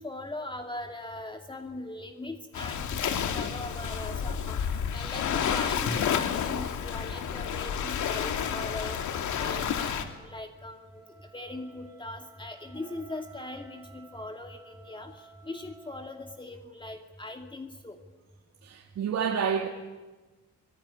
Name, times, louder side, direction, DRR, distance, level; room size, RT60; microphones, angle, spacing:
voice 1, 0.0-18.0, left 2 dB, 15° left, 2.4 m, -40 dB
Waves surf, 2.5-10.0, left 8 dB, 75° left, 2.8 m, -30 dB
Wind instrument woodwind instrument, 9.6-16.4, right 3 dB, 10° right, 5.4 m, -55 dB
voice 2, 18.6-19.7, right 7 dB, 60° right, 2.6 m, -29 dB
24.5 x 20.5 x 9.9 m
cardioid pair, 90°, 30 cm